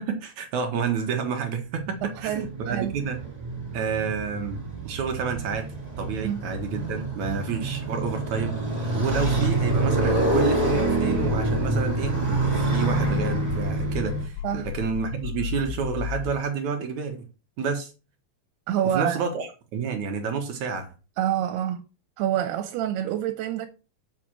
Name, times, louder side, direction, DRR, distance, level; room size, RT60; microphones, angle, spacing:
voice 1, 0.0-3.2 3.7-5.7 6.0-8.5 8.9-17.2 17.6-17.9 18.9-20.9, right 6 dB, 65° right, 2.1 m, -29 dB
Motorcycle, 1.7-14.2, right 2 dB, 15° right, 1.8 m, -27 dB
voice 2, 2.0-2.9 6.2-6.4 7.3-7.4 14.4-14.7 18.7-19.2 21.2-21.9 22.2-23.7, right 11 dB, 85° right, 2.8 m, -27 dB
sound 1, 9.1-16.4, left 9 dB, 85° left, 2.6 m, -33 dB
7.7 x 5.7 x 5.9 m
omnidirectional pair, 4.5 m